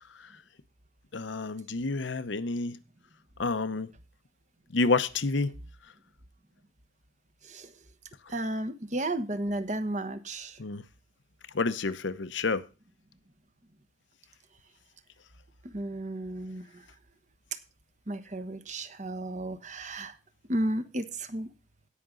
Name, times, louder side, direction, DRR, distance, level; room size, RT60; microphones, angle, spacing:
voice 1, 1.1-2.8 3.4-3.9 4.7-5.5 10.6-10.8 11.5-12.6, left 3 dB, 75° left, 0.8 m, -29 dB
voice 2, 8.3-10.6 15.6-16.8 18.1-20.2 20.5-21.5, right 1 dB, 40° right, 1.1 m, -33 dB
17.0 x 6.0 x 3.8 m
head